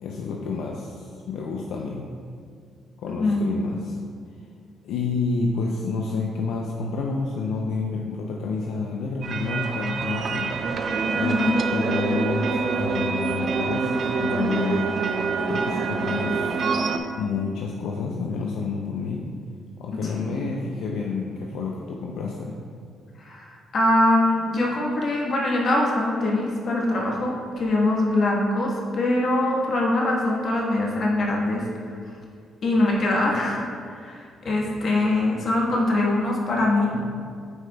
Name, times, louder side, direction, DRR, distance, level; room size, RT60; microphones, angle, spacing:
voice 1, 0.0-2.0 3.0-4.0 4.8-10.5 11.1-14.9 15.5-16.6 17.2-19.2 19.8-22.6, left 4 dB, 80° left, -1 dB, 0.5 m, -29 dB
voice 2, 3.1-3.5 11.2-11.6 20.0-20.3 23.2-31.7 32.6-37.0, left 2 dB, 55° left, -2 dB, 1.3 m, -23 dB
sound 1, 9.2-17.0, right 4 dB, 60° right, 0.5 m, -26 dB
9.5 x 4.8 x 2.2 m, 2.2 s
cardioid pair, 90°, 0 cm